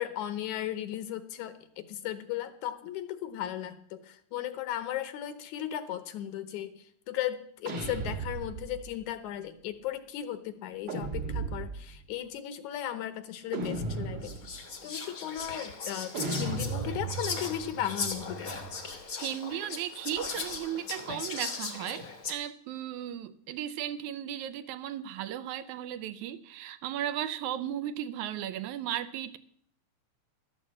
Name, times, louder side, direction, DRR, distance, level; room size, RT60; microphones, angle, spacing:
voice 1, 0.0-14.3 14.8-18.5, left 11 dB, 75° left, 2.2 m, -36 dB
sound 1, 7.6-8.9 10.9-12.0 13.5-14.6 16.1-18.8, right 3 dB, 45° right, 1.5 m, -36 dB
Whispering, 13.6-13.7 14.2-22.3, left 4 dB, 50° left, 1.0 m, -38 dB
voice 2, 19.2-29.4, right 11 dB, 80° right, 1.9 m, -36 dB
12.5 x 7.0 x 7.3 m
omnidirectional pair, 3.5 m